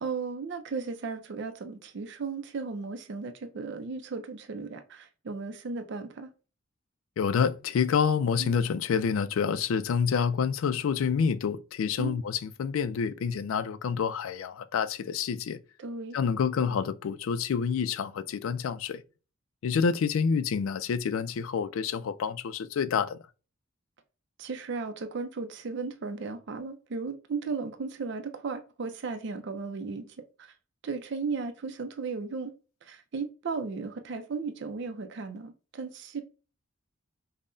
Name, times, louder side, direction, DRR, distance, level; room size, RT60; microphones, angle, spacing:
voice 1, 0.0-6.3 8.4-8.6 12.0-12.2 15.8-16.2 24.4-30.5 30.8-32.5 32.8-36.2, right 4 dB, 60° right, 0.4 m, -35 dB
voice 2, 7.2-15.6 16.1-19.0 19.6-23.2, left 6 dB, 80° left, 0.3 m, -28 dB
5.4 x 2.1 x 2.5 m
head